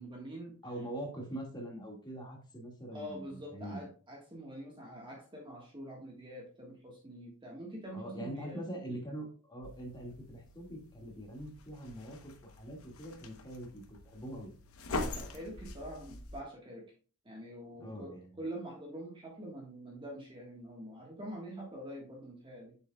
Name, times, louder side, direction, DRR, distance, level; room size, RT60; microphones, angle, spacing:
voice 1, 0.0-0.5 2.9-8.6 14.9-16.9 17.2-22.8, right 1 dB, 20° right, -1 dB, 1.4 m, -45 dB
voice 2, 0.6-3.8 7.9-14.5 17.8-18.3, right 1 dB, 20° left, 0 dB, 1.9 m, -43 dB
sound 1, 9.6-16.4, left 2 dB, 70° left, 0.9 m, -44 dB
6.9 x 6.7 x 2.3 m, 0.38 s
head